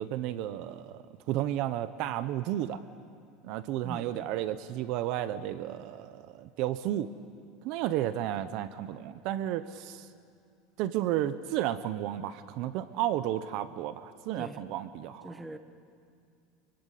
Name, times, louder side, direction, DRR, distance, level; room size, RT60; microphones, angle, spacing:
voice 1, 0.0-2.8 3.4-7.1 7.6-10.1 10.8-15.6, right 12 dB, 50° right, 13 dB, 0.8 m, -32 dB
voice 2, 3.8-4.3 14.4-14.6 15.2-15.6, right 1 dB, 5° right, 8 dB, 1.1 m, -42 dB
28.5 x 23.0 x 8.4 m, 2.4 s
supercardioid pair, 165°, 0 cm